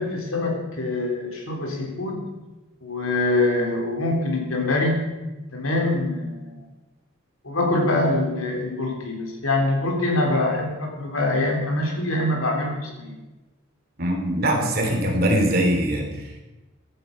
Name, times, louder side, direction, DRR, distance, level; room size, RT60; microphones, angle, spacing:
voice 1, 0.0-2.2 2.8-5.0 5.5-6.6 7.4-13.1, left 2 dB, 85° left, 1 dB, 3.5 m, -24 dB
voice 2, 14.0-16.1, right 1 dB, 45° right, 1 dB, 3.0 m, -22 dB
15.5 x 11.5 x 5.3 m, 1.1 s
head